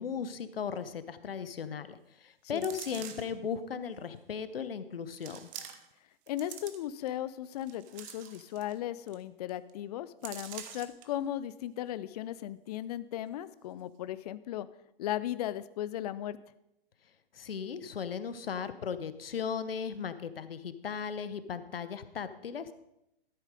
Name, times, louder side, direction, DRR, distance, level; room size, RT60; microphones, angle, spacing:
voice 1, 0.0-5.5 17.3-22.7, left 7 dB, 75° left, 13 dB, 1.0 m, -37 dB
sound 1, 2.6-3.4 4.2-4.3 5.1-6.0 6.3-7.1 7.6-8.8 9.1-9.2 9.5-9.7 10.2-11.1 11.5-11.6, right 10 dB, 25° right, 1.0 m, -46 dB
voice 2, 6.3-14.7 15.0-16.4, left 12 dB, 40° left, 16 dB, 0.5 m, -36 dB
13.0 x 7.3 x 5.2 m, 0.84 s
figure-of-eight pair, 120°, 30 cm